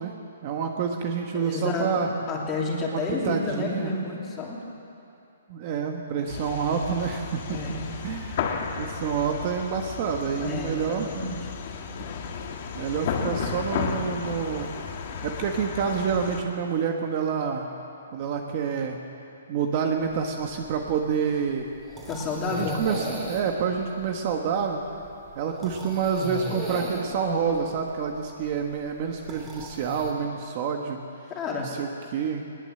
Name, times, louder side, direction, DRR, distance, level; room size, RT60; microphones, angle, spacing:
voice 1, 0.0-2.1 2.9-3.9 5.5-8.4 8.8-11.1 12.7-14.7 15.2-17.7 18.1-19.0 19.5-21.7 22.5-24.8 25.3-31.0 31.6-32.4, right 6 dB, 30° right, 3 dB, 1.4 m, -28 dB
voice 2, 1.3-4.6 7.5-7.9 9.0-9.1 10.4-11.4 22.1-22.8 31.3-31.8, left 3 dB, 15° left, -2 dB, 2.8 m, -30 dB
sound 1, 6.3-16.4, left 6 dB, 35° left, 1.8 m, -33 dB
sound 2, 20.0-30.1, right 1 dB, 10° right, 2.9 m, -39 dB
20.5 x 20.0 x 7.8 m, 2.7 s
hypercardioid pair, 170°, 0 cm